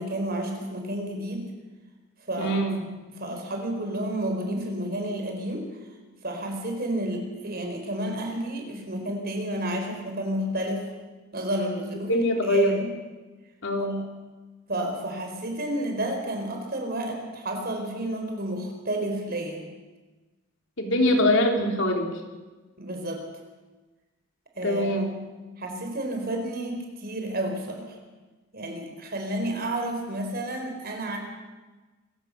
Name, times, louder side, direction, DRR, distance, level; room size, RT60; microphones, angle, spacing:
voice 1, 0.0-1.5 2.3-2.6 3.2-5.7 6.2-10.9 11.3-12.9 14.7-19.6 22.8-23.2 24.5-24.9 25.6-28.0 28.5-31.2, right 1 dB, 50° right, 3 dB, 4.7 m, -31 dB
voice 2, 2.4-2.8 12.1-12.8 13.6-14.0 20.8-22.1 24.6-25.1, left 1 dB, 65° left, 3 dB, 3.5 m, -23 dB
26.0 x 16.0 x 6.7 m, 1.2 s
head